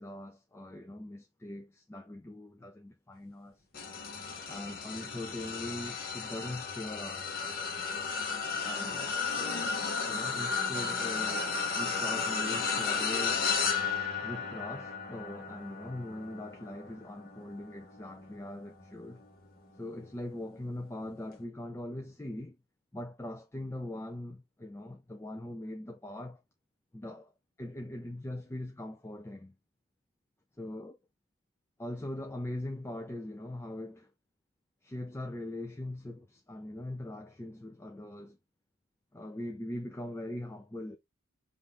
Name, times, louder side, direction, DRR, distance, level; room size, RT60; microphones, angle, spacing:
voice 1, 0.0-3.6 4.5-7.5 8.6-13.5 14.2-19.2 19.8-22.6 22.9-26.4 26.9-27.3 27.6-29.6 30.6-31.0 31.8-34.1 34.8-38.4 39.1-41.0, left 1 dB, 10° left, 0.3 m, -41 dB
sound 1, 3.7-19.3 19.8-20.0 21.3-21.4, left 5 dB, 45° left, 0.9 m, -34 dB
5.1 x 2.5 x 3.2 m
head